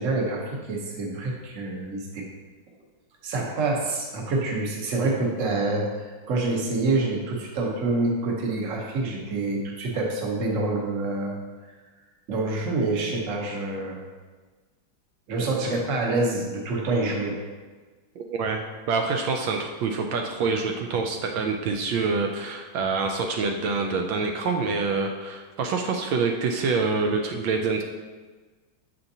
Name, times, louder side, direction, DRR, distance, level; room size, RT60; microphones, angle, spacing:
voice 1, 0.0-2.3 3.2-11.4 11.6-11.7 12.3-14.0 15.3-17.4, right 2 dB, 50° right, 0 dB, 1.1 m, -27 dB
voice 2, 18.2-27.8, right 4 dB, 80° right, 3 dB, 1.3 m, -26 dB
7.1 x 5.2 x 2.7 m, 1.4 s
omnidirectional pair, 2.1 m